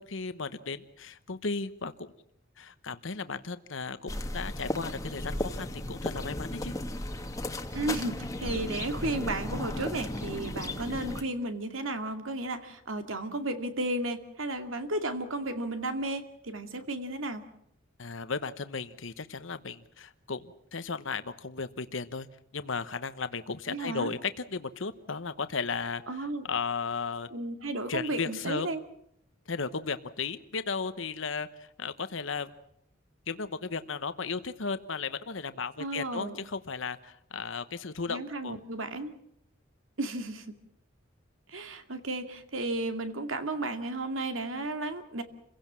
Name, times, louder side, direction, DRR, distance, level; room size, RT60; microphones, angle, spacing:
voice 1, 0.0-2.1 2.6-6.7 18.0-22.3 22.5-27.3 27.9-28.7 29.5-32.5 33.3-38.6, left 4 dB, 75° left, 12 dB, 1.0 m, -35 dB
sound 1, 4.1-11.2, left 1 dB, 15° left, 1.4 m, -35 dB
voice 2, 7.7-17.4 23.7-24.1 26.1-26.4 27.3-28.8 35.8-36.4 38.1-39.1 40.0-40.5 41.5-45.2, right 2 dB, 85° right, 8 dB, 2.3 m, -33 dB
28.5 x 16.5 x 7.5 m, 0.72 s
head